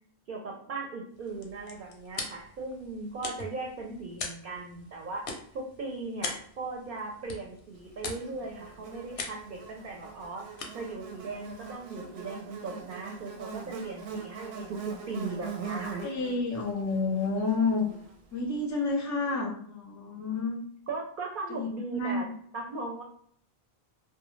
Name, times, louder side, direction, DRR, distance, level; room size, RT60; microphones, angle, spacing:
voice 1, 0.3-10.5 10.7-14.8 15.1-16.0 20.9-22.3 22.5-23.0, right 3 dB, 60° right, -1 dB, 0.7 m, -38 dB
sound 1, 1.1-12.3, left 4 dB, 85° left, 0.8 m, -43 dB
Buzz, 8.1-18.5, right 5 dB, 90° right, 0.8 m, -42 dB
voice 2, 16.0-17.9 18.3-20.6 21.5-22.3, left 3 dB, 30° left, 0 dB, 0.3 m, -30 dB
2.3 x 2.1 x 3.0 m, 0.62 s
omnidirectional pair, 1.0 m